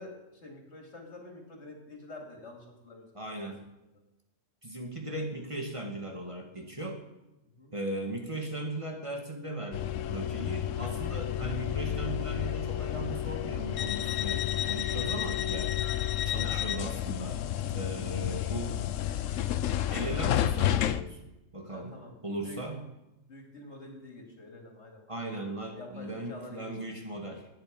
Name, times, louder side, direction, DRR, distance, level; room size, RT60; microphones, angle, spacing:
voice 1, 0.0-3.3 7.6-7.7 21.7-22.1 22.4-22.6 23.3-25.3 25.7-27.0, left 2 dB, 65° left, 2 dB, 2.9 m, -47 dB
voice 2, 3.1-3.7 4.6-7.0 7.7-14.4 14.7-15.8 16.3-17.4 17.7-18.8 19.9-21.2 21.5-22.8 25.1-27.5, right 1 dB, 25° right, 2 dB, 1.8 m, -37 dB
sound 1, 9.7-21.0, left 11 dB, 85° left, 1.0 m, -31 dB
17.5 x 9.5 x 5.3 m, 0.97 s
omnidirectional pair, 1.3 m